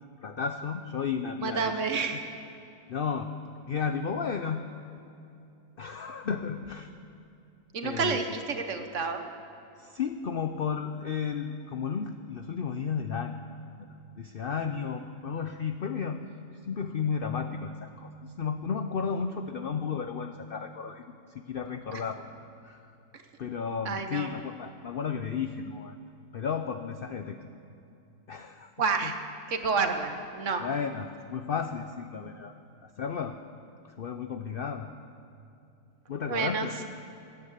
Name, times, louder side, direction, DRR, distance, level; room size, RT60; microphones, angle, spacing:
voice 1, 0.2-1.8 2.9-3.3 3.6-4.6 5.8-6.9 7.8-8.2 9.8-13.4 14.2-16.2 16.6-21.0 21.5-22.3 22.6-22.8 23.4-26.0 26.3-27.4 28.3-28.7 29.0-29.1 30.6-32.5 32.8-33.4 34.0-34.9 36.1-36.8, left 6 dB, 70° left, 8 dB, 0.5 m, -33 dB
voice 2, 1.4-2.3 7.7-9.2 21.9-22.0 23.8-24.3 28.8-29.2 29.5-30.6 36.3-36.7, right 5 dB, 55° right, 6 dB, 1.3 m, -29 dB
15.5 x 9.5 x 8.1 m, 2.7 s
omnidirectional pair, 1.7 m